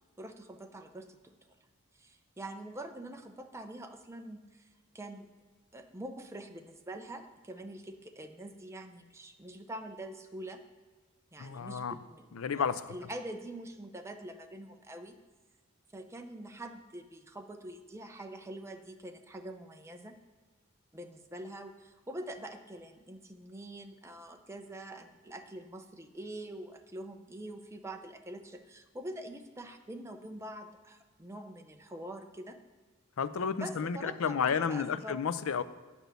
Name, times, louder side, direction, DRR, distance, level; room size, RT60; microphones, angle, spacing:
voice 1, 0.2-1.3 2.0-4.7 4.9-5.3 5.7-10.6 11.3-15.2 15.9-20.2 20.9-32.6 33.6-35.2, right 1 dB, 15° right, 5 dB, 0.7 m, -45 dB
voice 2, 11.4-12.0 12.3-12.9 33.2-35.6, left 6 dB, 75° left, 14 dB, 0.5 m, -31 dB
9.3 x 6.1 x 6.8 m, 1.4 s
head